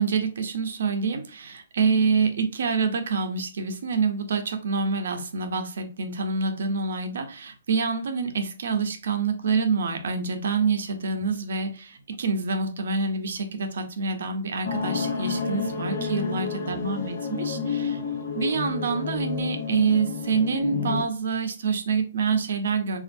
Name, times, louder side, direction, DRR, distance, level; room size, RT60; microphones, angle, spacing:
voice 1, 0.0-18.0 18.3-23.0, right 5 dB, 55° right, 6 dB, 0.6 m, -26 dB
sound 1, 14.6-21.0, left 5 dB, 45° left, 0.8 m, -30 dB
4.2 x 2.5 x 2.5 m, 0.37 s
hypercardioid pair, 180°, 0 cm